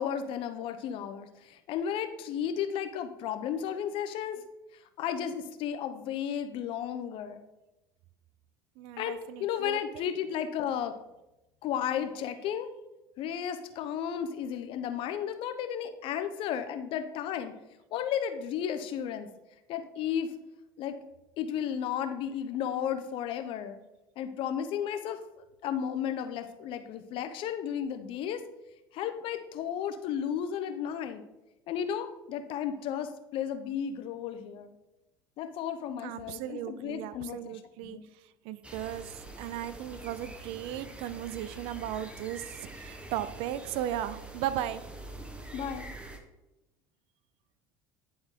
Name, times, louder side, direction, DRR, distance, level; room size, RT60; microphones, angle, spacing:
voice 1, 0.0-4.4 5.0-7.4 9.0-10.9 11.6-12.7 13.2-17.5 17.9-19.3 19.7-20.3 20.8-21.0 21.4-23.8 24.2-25.2 25.6-28.4 28.9-31.2 31.7-34.8 35.4-38.1 45.5-45.9, left 9 dB, 55° left, 9 dB, 0.7 m, -33 dB
voice 2, 8.8-10.0 36.0-38.0 38.4-45.0, right 12 dB, 65° right, 15 dB, 0.4 m, -36 dB
sound 1, 38.6-46.2, right 2 dB, 10° right, 1.1 m, -45 dB
10.5 x 3.8 x 3.6 m, 0.96 s
hypercardioid pair, 75°, 10 cm